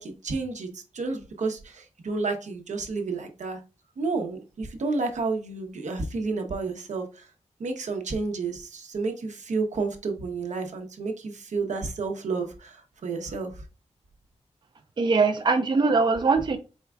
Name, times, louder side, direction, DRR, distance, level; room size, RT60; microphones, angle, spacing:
voice 1, 0.0-3.6 4.0-7.3 7.6-13.6, right 3 dB, 90° right, 0.8 m, -31 dB
voice 2, 15.0-16.6, right 4 dB, 40° right, 0.4 m, -21 dB
4.4 x 3.5 x 2.3 m
wide cardioid pair, 140°, 12 cm